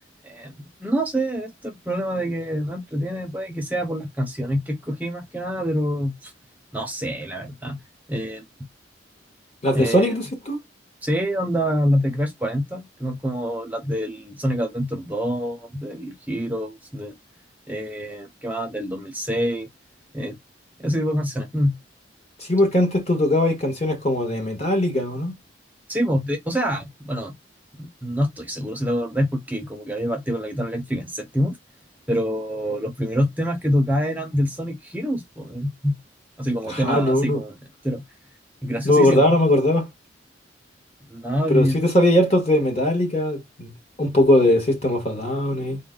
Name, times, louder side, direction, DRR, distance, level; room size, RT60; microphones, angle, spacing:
voice 1, 0.2-6.3 6.7-7.8 8.1-8.4 9.7-10.2 11.0-17.1 17.7-19.7 20.1-20.4 20.8-21.7 25.9-27.3 27.8-31.6 32.1-35.9 36.4-37.5 37.8-38.0 38.6-39.3 41.1-41.8, equal, 10° right, 0.6 m, -26 dB
voice 2, 9.6-10.6 22.4-25.3 36.7-37.4 38.8-39.9 41.5-43.7 44.0-45.8, left 1 dB, 35° left, 1.4 m, -20 dB
3.7 x 2.2 x 3.8 m
head